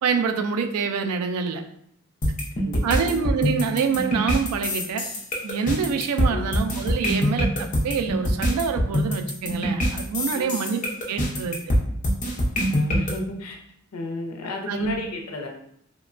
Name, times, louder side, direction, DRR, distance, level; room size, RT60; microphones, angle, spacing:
voice 1, 0.0-1.6 2.8-5.0 5.4-10.8 11.1-11.6 14.7-15.1, right 6 dB, 85° right, 6 dB, 0.3 m, -26 dB
sound 1, 2.2-13.1, equal, 35° left, 0.5 m, -24 dB
voice 2, 2.6-3.2 6.3-6.6 10.3-10.7 12.7-13.6 13.9-15.5, left 2 dB, 90° left, 2 dB, 0.5 m, -33 dB
2.9 x 2.1 x 2.4 m, 0.70 s
head